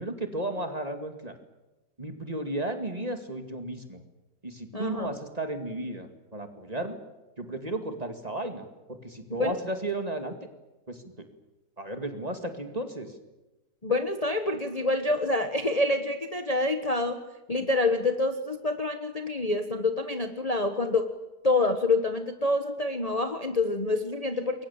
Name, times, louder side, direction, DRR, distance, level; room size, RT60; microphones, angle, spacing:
voice 1, 0.0-1.4 2.0-4.0 4.4-7.0 7.4-10.4 10.9-11.1 11.8-13.2, right 1 dB, 25° right, 6 dB, 2.4 m, -34 dB
voice 2, 4.7-5.1 9.4-9.6 13.8-17.2 17.5-21.1 21.4-24.6, left 2 dB, 25° left, 7 dB, 1.3 m, -27 dB
28.0 x 23.0 x 7.3 m, 1.1 s
omnidirectional pair, 1.8 m